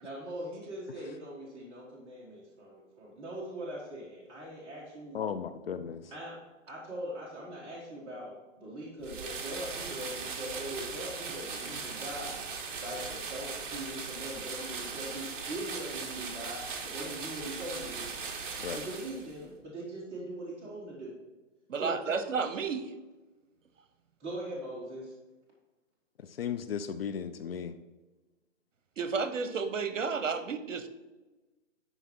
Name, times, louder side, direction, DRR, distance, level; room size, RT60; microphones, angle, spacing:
voice 1, 0.0-5.2 6.1-6.3 6.7-12.5 12.8-18.2 18.7-21.1 21.8-22.2 24.2-25.1, right 1 dB, 15° right, -5 dB, 1.3 m, -41 dB
voice 2, 5.1-6.0 18.6-18.8 26.4-27.7, left 7 dB, 50° left, 10 dB, 0.5 m, -35 dB
sound 1, 9.0-19.4, right 5 dB, 40° right, 1.1 m, -39 dB
voice 3, 21.7-22.9 29.0-30.9, right 5 dB, 75° right, 11 dB, 0.9 m, -32 dB
11.0 x 4.1 x 4.4 m, 1.2 s
hypercardioid pair, 140°, 38 cm